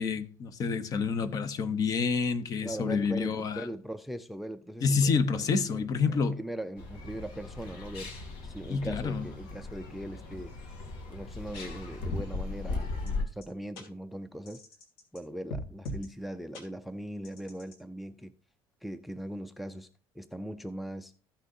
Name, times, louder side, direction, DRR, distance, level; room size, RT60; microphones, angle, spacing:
voice 1, 0.0-3.7 4.8-6.4 8.7-9.3, left 5 dB, 40° left, 0.8 m, -28 dB
voice 2, 2.6-8.1 8.4-10.5 11.1-14.6 15.1-18.3 18.8-19.9 20.1-21.1, right 1 dB, ahead, 0.3 m, -40 dB
sound 1, 6.8-13.2, left 3 dB, 65° left, 2.3 m, -38 dB
sound 2, 13.1-13.2 13.4-13.5 13.8-13.9 14.5-15.2 15.5-16.1 16.5-16.6 17.2-17.8, equal, 90° left, 2.6 m, -40 dB
14.5 x 6.2 x 2.7 m
cardioid pair, 140°, 10 cm